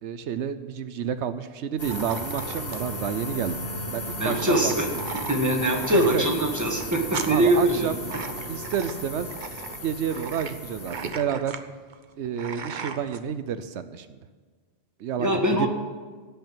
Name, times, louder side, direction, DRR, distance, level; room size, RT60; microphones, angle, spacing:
voice 1, 0.0-3.6 3.9-5.0 5.9-6.2 7.3-8.0 8.5-9.3 9.8-11.6 12.2-14.2 15.0-15.7, right 8 dB, 90° right, 11 dB, 1.0 m, -30 dB
sound 1, 1.8-11.1, left 1 dB, 60° left, 3.2 m, -35 dB
sound 2, 1.9-13.2, right 6 dB, 50° right, 0.8 m, -38 dB
voice 2, 4.2-4.9 5.3-7.9 15.2-15.7, right 1 dB, 15° right, 2 dB, 1.7 m, -23 dB
16.5 x 5.7 x 8.8 m, 1.4 s
omnidirectional pair, 1.1 m